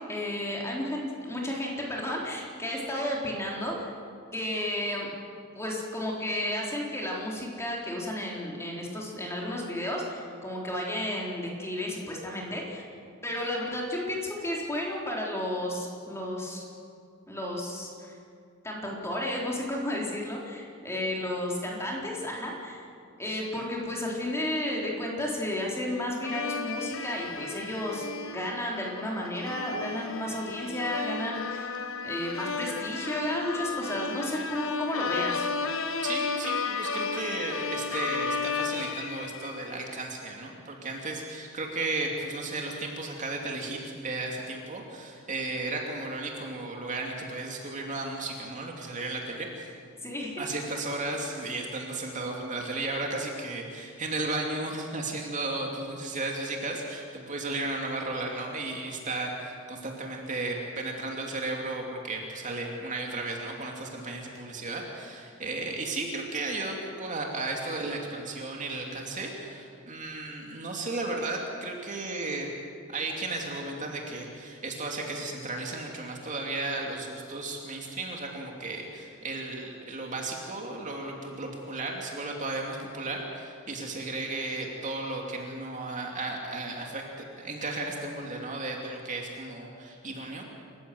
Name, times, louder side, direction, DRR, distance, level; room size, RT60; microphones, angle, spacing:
voice 1, 0.1-3.9 4.3-5.1 5.6-12.8 13.2-16.6 17.3-18.1 18.6-22.8 23.2-31.8 32.0-35.5 50.0-50.4, left 1 dB, 15° left, -2 dB, 4.0 m, -32 dB
sound 1, 26.2-39.9, left 5 dB, 70° left, 1.4 m, -33 dB
voice 2, 36.0-49.7 50.4-72.5 72.9-87.0 87.4-90.4, right 2 dB, 35° right, 0 dB, 2.7 m, -34 dB
28.0 x 15.0 x 7.9 m, 2.3 s
head